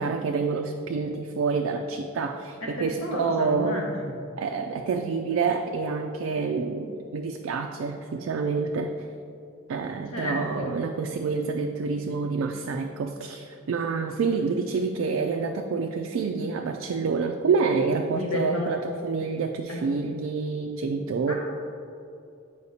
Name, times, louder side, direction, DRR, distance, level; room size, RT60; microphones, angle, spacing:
voice 1, 0.0-3.8 4.4-8.9 9.7-21.3, right 4 dB, 70° right, 4 dB, 0.3 m, -28 dB
voice 2, 2.6-4.2 10.1-10.7 14.2-14.3 18.2-18.7 19.7-19.8 21.3-21.4, left 1 dB, 75° left, -3 dB, 1.4 m, -31 dB
8.0 x 5.0 x 2.8 m, 2.6 s
head